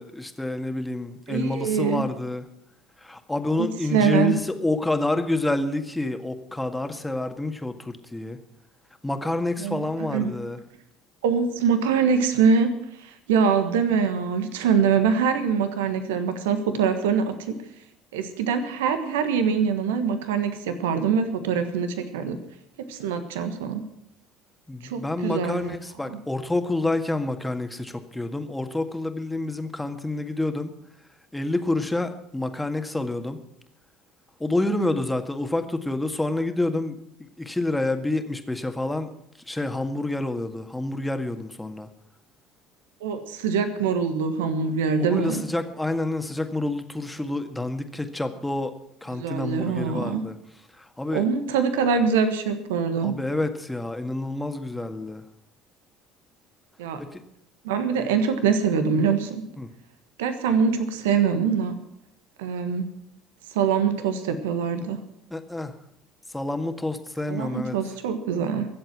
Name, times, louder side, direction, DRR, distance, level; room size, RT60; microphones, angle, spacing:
voice 1, 0.0-2.4 3.0-8.4 9.0-10.6 24.7-30.7 31.3-33.4 34.4-36.9 37.4-39.1 39.5-41.9 45.0-48.7 49.0-50.3 51.0-51.2 53.0-55.2 59.0-59.1 59.6-59.7 65.3-65.7 66.3-67.7, left 2 dB, 10° left, 6 dB, 1.8 m, -28 dB
voice 2, 1.3-2.0 3.6-4.4 9.6-10.3 11.2-12.7 13.0-17.6 18.1-22.4 22.8-23.8 24.8-25.8 26.0-26.2 34.8-34.9 43.0-45.4 49.1-50.2 51.1-53.1 56.8-57.0 57.6-59.4 60.2-61.7 62.4-62.9 63.5-65.0 67.3-68.7, right 6 dB, 75° right, 9 dB, 1.4 m, -24 dB
23.0 x 7.9 x 6.1 m, 0.76 s
hypercardioid pair, 65°, 0 cm